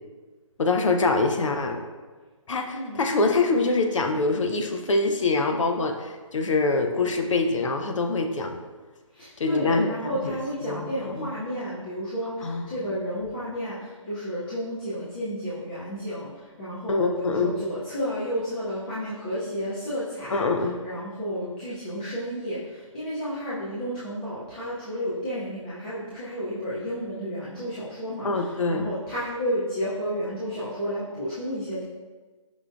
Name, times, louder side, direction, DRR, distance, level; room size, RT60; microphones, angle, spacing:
voice 1, 0.6-1.8 2.5-8.6 9.4-10.9 11.2-11.3 12.4-12.9 16.9-17.5 20.3-20.8 28.2-28.9, left 3 dB, 65° left, 4 dB, 0.6 m, -25 dB
voice 2, 9.1-20.5 20.8-31.8, equal, 15° left, -11 dB, 0.5 m, -32 dB
5.4 x 3.3 x 2.4 m, 1.3 s
hypercardioid pair, 165°, 17 cm